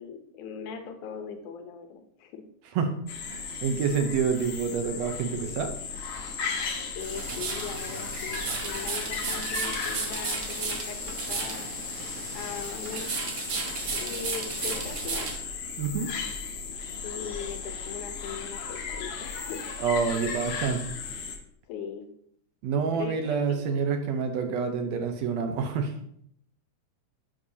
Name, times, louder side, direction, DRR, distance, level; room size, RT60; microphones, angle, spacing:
voice 1, 0.0-2.4 6.9-11.8 12.3-13.1 13.9-15.3 17.0-19.6 21.7-22.1 22.9-23.6, left 7 dB, 85° left, 6 dB, 2.3 m, -39 dB
voice 2, 2.8-5.7 15.8-16.1 19.8-20.8 22.6-25.9, right 6 dB, 70° right, 6 dB, 1.9 m, -28 dB
sound 1, 3.1-21.4, left 5 dB, 65° left, 1.6 m, -36 dB
sound 2, 7.0-15.4, right 4 dB, 90° right, 0.8 m, -34 dB
9.9 x 6.1 x 2.8 m, 0.70 s
omnidirectional pair, 3.4 m